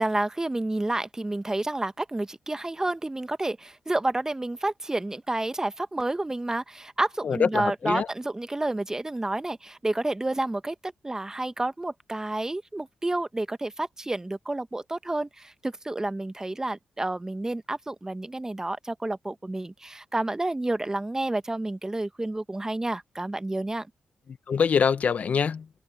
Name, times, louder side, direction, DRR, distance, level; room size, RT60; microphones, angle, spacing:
voice 1, 0.0-23.9, right 2 dB, 20° right, 1.2 m, -30 dB
voice 2, 7.2-8.1 24.5-25.6, left 6 dB, 65° left, 1.3 m, -24 dB
supercardioid pair, 45°, 3 cm